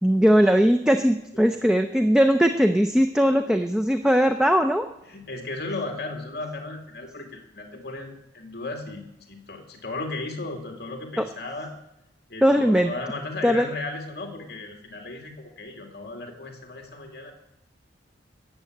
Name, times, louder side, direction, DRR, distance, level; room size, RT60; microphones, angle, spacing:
voice 1, 0.0-4.9 11.2-11.3 12.4-12.9 13.4-13.7, equal, 5° right, 6 dB, 0.5 m, -19 dB
voice 2, 5.1-11.7 12.3-17.3, left 2 dB, 55° left, 2 dB, 2.4 m, -35 dB
16.0 x 7.6 x 9.5 m, 0.90 s
head